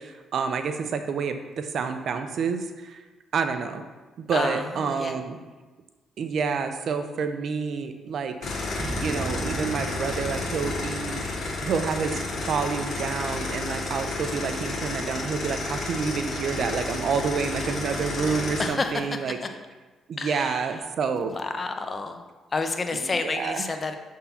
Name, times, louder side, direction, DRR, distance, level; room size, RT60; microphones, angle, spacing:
voice 1, 0.0-3.0 3.3-3.8 4.2-5.4 6.2-8.3 9.0-11.2 11.6-19.4 20.1-21.3 23.0-23.6, right 5 dB, 60° right, 7 dB, 0.6 m, -28 dB
voice 2, 4.3-5.2 18.6-19.6 20.2-20.8 21.3-22.2 22.5-23.9, left 3 dB, 35° left, 6 dB, 0.6 m, -30 dB
sound 1, 8.4-18.7, left 3 dB, 55° left, 1.3 m, -31 dB
sound 2, 8.7-14.8, right 2 dB, 30° right, 1.1 m, -38 dB
5.6 x 3.7 x 5.7 m, 1.3 s
cardioid pair, 90°, 0 cm